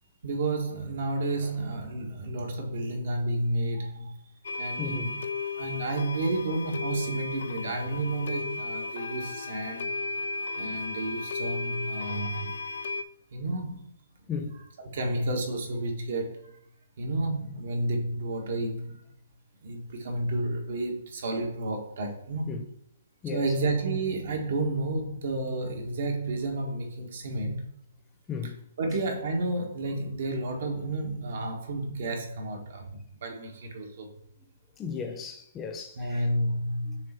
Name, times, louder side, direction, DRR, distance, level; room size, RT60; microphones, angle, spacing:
voice 1, 0.2-4.1 4.6-5.2 5.6-9.9 10.6-12.5 13.3-13.9 14.9-16.5 17.0-19.0 19.6-22.6 23.3-27.7 28.8-34.1 35.9-37.0, right 2 dB, 60° right, 1.6 m, -31 dB
sound 1, 4.4-13.0, left 3 dB, 65° left, 0.5 m, -35 dB
voice 2, 4.8-5.1 14.3-14.5 22.5-22.6 23.2-23.4 28.3-28.5 34.8-36.2 36.9-37.0, left 6 dB, 20° left, 0.9 m, -35 dB
6.7 x 3.2 x 4.4 m
hypercardioid pair, 145°, 0 cm